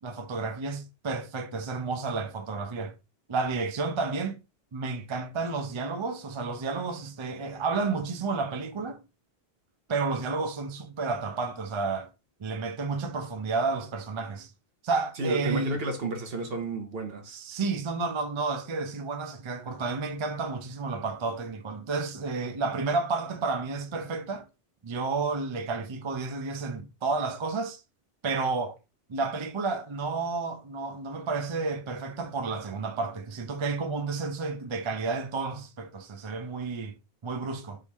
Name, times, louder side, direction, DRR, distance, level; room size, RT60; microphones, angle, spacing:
voice 1, 0.0-2.9 3.3-4.4 4.7-9.0 9.9-12.1 12.4-14.5 14.8-15.8 17.3-24.5 24.8-27.8 28.2-28.8 29.1-36.9 37.2-37.8, right 4 dB, 35° right, 0.5 m, -31 dB
voice 2, 15.2-17.4, right 2 dB, 70° right, 1.2 m, -32 dB
3.8 x 3.2 x 4.1 m
omnidirectional pair, 1.1 m